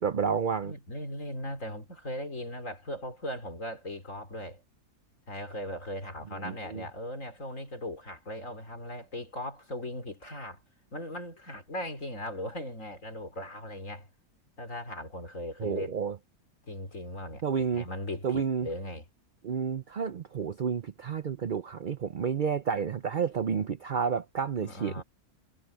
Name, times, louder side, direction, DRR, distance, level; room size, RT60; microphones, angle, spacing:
voice 1, 0.0-0.7 6.4-6.8 15.6-16.2 17.4-17.9 18.2-18.7 19.4-25.0, right 6 dB, 60° right, 0.5 m, -30 dB
voice 2, 0.6-4.6 5.3-10.6 10.9-14.1 14.6-15.9 16.7-19.1 23.2-23.3 24.6-25.0, left 1 dB, 55° left, 4.6 m, -38 dB
omnidirectional pair, 1.6 m